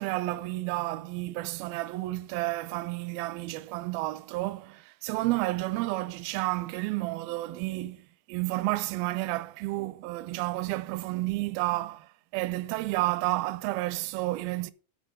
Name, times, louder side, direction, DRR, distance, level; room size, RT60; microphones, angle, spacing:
voice 1, 0.0-8.0 8.3-14.7, right 19 dB, 85° right, 2.4 m, -31 dB
11.0 x 4.8 x 6.3 m
omnidirectional pair, 4.2 m